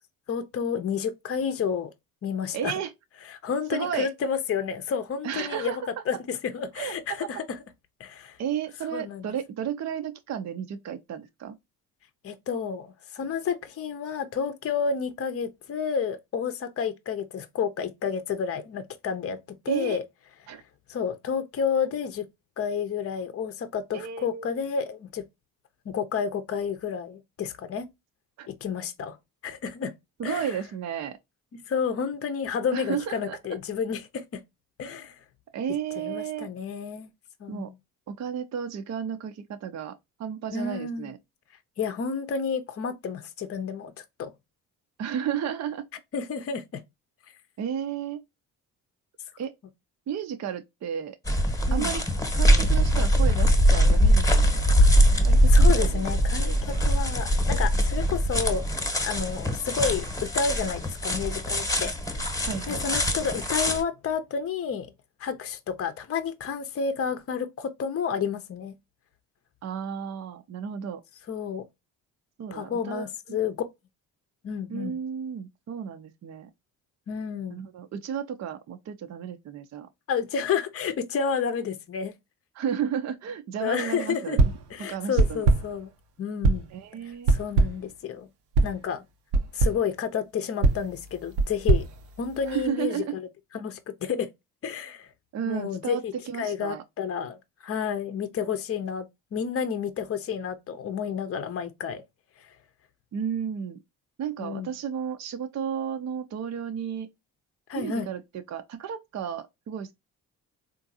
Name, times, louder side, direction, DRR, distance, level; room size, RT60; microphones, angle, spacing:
voice 1, 0.3-1.9 2.2-2.7 3.3-5.7 6.1-7.4 8.0-8.4 8.9-9.2 12.2-19.4 19.6-20.0 20.9-22.3 22.6-25.2 25.9-27.9 28.5-29.2 29.4-29.9 30.2-30.6 31.7-34.4 34.8-35.1 36.0-37.1 37.4-37.7 40.5-41.1 41.8-44.3 46.1-46.8 51.7-51.9 55.5-58.6 59.0-61.9 62.7-64.9 65.2-68.7 71.3-71.6 72.5-73.6 74.4-75.0 77.1-77.6 80.1-82.1 83.6-84.4 84.7-85.9 86.2-86.6 87.3-88.3 88.6-89.0 89.5-91.9 92.2-93.0 93.5-94.3 94.6-95.1 95.5-96.1 96.4-102.0 102.4-102.5 104.4-104.7 107.7-108.1, left 6 dB, 35° left, 0.7 m, -30 dB
voice 2, 2.5-2.9 3.7-4.1 5.2-6.0 6.8-7.0 8.4-11.6 19.7-20.0 20.5-20.6 23.9-24.6 28.4-28.5 30.2-31.2 32.7-33.4 35.5-36.5 37.5-37.7 38.1-41.2 45.0-45.9 47.6-48.2 49.4-49.5 50.1-51.2 51.7-52.0 52.3-54.6 55.2-56.0 56.4-56.8 62.4-62.8 69.6-71.0 72.4-73.4 74.7-76.5 77.5-79.9 82.5-84.4 84.8-85.4 86.7-87.3 92.5-93.2 95.3-96.8 103.1-103.8 104.2-107.1 107.7-109.9, right 8 dB, 45° right, 0.5 m, -33 dB
sound 1, 51.3-63.8, equal, 10° left, 1.1 m, -22 dB
sound 2, 84.4-84.7 85.2-85.8 86.4-86.8 87.3-87.9 88.5-88.8 89.3-89.9 90.6-92.7, right 3 dB, 80° right, 0.7 m, -23 dB
3.7 x 2.5 x 2.6 m
supercardioid pair, 60°, 40 cm